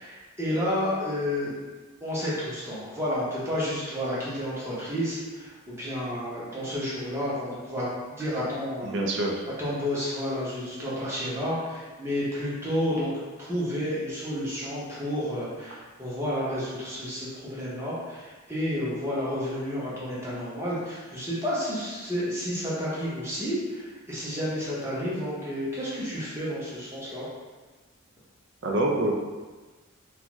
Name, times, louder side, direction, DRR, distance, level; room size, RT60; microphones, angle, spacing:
voice 1, 0.0-1.5 2.0-9.0 9.6-13.1 13.4-27.3, equal, 10° right, -9 dB, 0.7 m, -31 dB
voice 2, 8.8-9.3 28.6-29.1, right 1 dB, 55° right, 0 dB, 0.4 m, -25 dB
2.5 x 2.3 x 3.0 m, 1.3 s
head